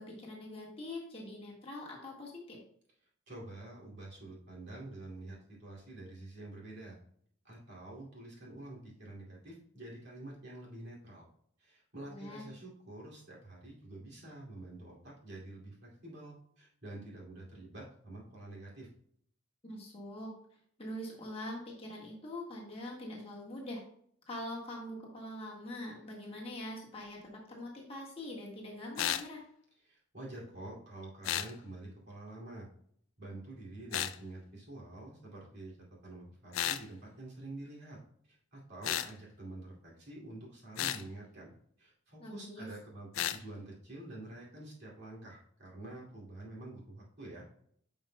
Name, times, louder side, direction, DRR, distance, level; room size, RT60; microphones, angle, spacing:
voice 1, 0.0-2.6 12.1-12.4 19.6-20.3 20.8-23.8 24.3-29.4 42.2-42.7, left 1 dB, 25° left, -3 dB, 1.5 m, -43 dB
voice 2, 3.3-7.0 7.4-11.2 11.6-18.9 29.8-32.7 33.2-35.8 36.0-38.0 38.3-41.5 41.8-47.5, right 2 dB, 50° right, -4 dB, 2.5 m, -48 dB
sound 1, 29.0-29.3 31.2-31.5 33.9-34.2 36.5-36.8 38.8-39.1 40.8-41.0 43.1-43.4, left 11 dB, 75° left, 0.4 m, -33 dB
10.0 x 5.4 x 2.2 m, 0.64 s
head